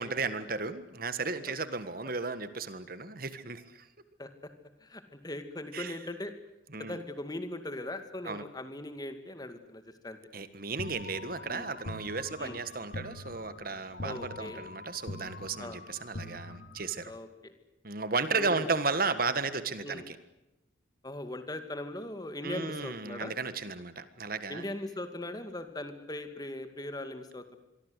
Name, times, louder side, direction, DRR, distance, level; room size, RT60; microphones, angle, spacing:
voice 1, 0.0-3.9 5.7-6.0 6.7-7.0 8.2-8.4 10.3-17.1 17.8-20.2 22.4-24.7, right 4 dB, 45° right, 12 dB, 1.6 m, -34 dB
voice 2, 4.2-4.5 4.8-6.3 6.8-10.2 11.5-11.7 12.4-12.6 14.0-14.7 15.6-15.8 17.0-17.5 18.3-18.7 19.8-20.0 21.0-23.3 24.5-27.6, left 1 dB, 20° left, 8 dB, 2.4 m, -40 dB
sound 1, 10.8-17.2, left 2 dB, 50° left, 1.6 m, -44 dB
26.0 x 23.5 x 8.2 m, 0.94 s
head